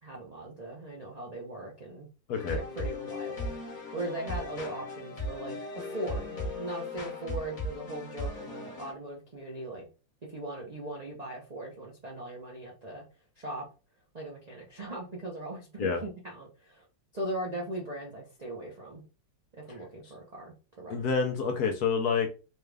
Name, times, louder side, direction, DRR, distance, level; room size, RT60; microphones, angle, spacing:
voice 1, 0.0-2.1 2.5-9.9 10.3-13.0 13.4-13.6 14.1-16.8 17.1-19.0 19.6-20.9, right 2 dB, 65° right, -3 dB, 0.4 m, -39 dB
sound 1, 2.3-8.9, left 2 dB, 50° left, 1.6 m, -37 dB
voice 2, 20.9-22.3, left 5 dB, 70° left, 4 dB, 1.0 m, -28 dB
4.3 x 2.3 x 3.3 m, 0.32 s
omnidirectional pair, 2.1 m